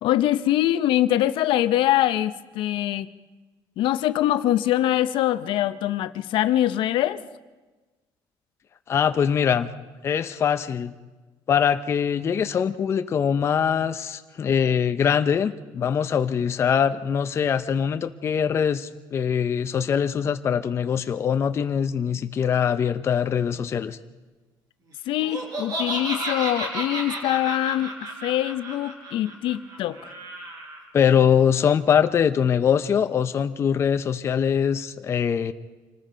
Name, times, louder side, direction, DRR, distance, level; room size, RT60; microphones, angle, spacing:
voice 1, 0.0-3.1 3.8-7.2 25.1-27.9 28.2-30.1, left 13 dB, 70° left, 13 dB, 0.7 m, -23 dB
voice 2, 8.9-9.7 10.0-10.9 11.5-24.0 30.9-35.5, left 7 dB, 30° left, 9 dB, 0.5 m, -22 dB
Laughter, 25.2-30.8, right 1 dB, 45° right, 4.3 m, -32 dB
26.5 x 19.0 x 5.1 m, 1.2 s
cardioid pair, 165°, 9 cm